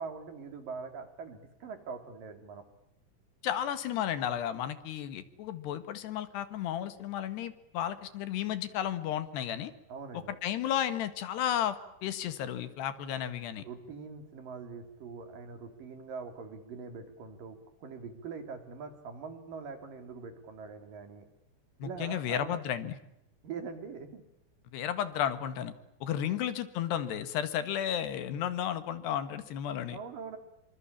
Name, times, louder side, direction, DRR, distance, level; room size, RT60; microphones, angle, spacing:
voice 1, 0.0-2.6 9.9-10.4 13.6-21.3 21.8-22.6 23.4-24.2 26.2-26.3 29.9-30.4, right 5 dB, 55° right, 8 dB, 4.5 m, -43 dB
voice 2, 3.4-9.7 10.1-13.7 21.8-23.0 24.7-25.7 26.0-30.0, left 10 dB, 75° left, 12 dB, 3.8 m, -33 dB
27.5 x 25.0 x 8.7 m, 0.83 s
omnidirectional pair, 4.8 m